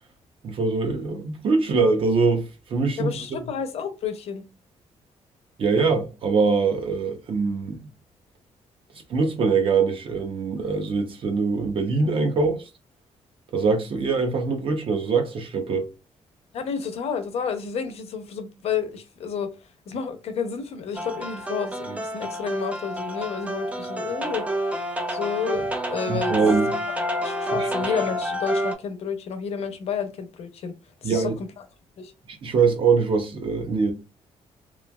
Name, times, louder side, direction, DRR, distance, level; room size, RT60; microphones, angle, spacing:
voice 1, 0.4-3.4 5.6-7.8 9.1-12.7 13.5-15.9 26.1-26.8 27.6-27.7 31.0-31.4 32.3-33.9, right 4 dB, 50° right, 0.7 m, -23 dB
voice 2, 3.0-4.4 16.5-19.5 19.9-24.4 25.1-26.6 26.9-30.7 31.0-31.3 32.0-32.1, left 6 dB, 60° left, 0.6 m, -30 dB
sound 1, 20.9-28.7, equal, 10° right, 0.4 m, -28 dB
3.1 x 2.3 x 2.2 m
cardioid pair, 155°, 12 cm